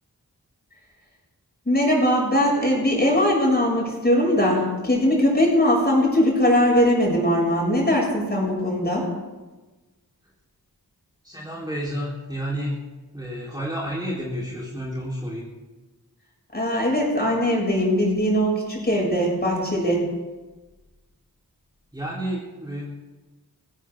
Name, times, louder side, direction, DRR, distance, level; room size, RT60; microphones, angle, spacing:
voice 1, 1.7-9.1 16.5-20.1, equal, 25° left, -3 dB, 6.9 m, -20 dB
voice 2, 11.2-12.8 13.1-15.5 21.9-22.8, equal, 10° right, -6 dB, 3.9 m, -30 dB
19.0 x 16.0 x 3.8 m, 1.2 s
wide cardioid pair, 65°, 37 cm